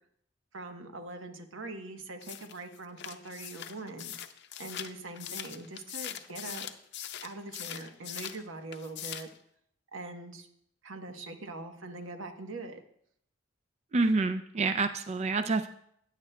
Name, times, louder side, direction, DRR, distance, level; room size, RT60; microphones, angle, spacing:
voice 1, 0.5-4.1 4.6-6.7 7.2-9.3 9.9-10.5 10.8-12.8, right 2 dB, 90° right, 6 dB, 1.0 m, -42 dB
sound 1, 2.2-8.4 8.7-9.4, left 10 dB, 60° left, 0.6 m, -41 dB
voice 2, 13.9-15.7, right 3 dB, 35° right, 9 dB, 0.4 m, -27 dB
15.5 x 9.2 x 2.2 m, 0.70 s
head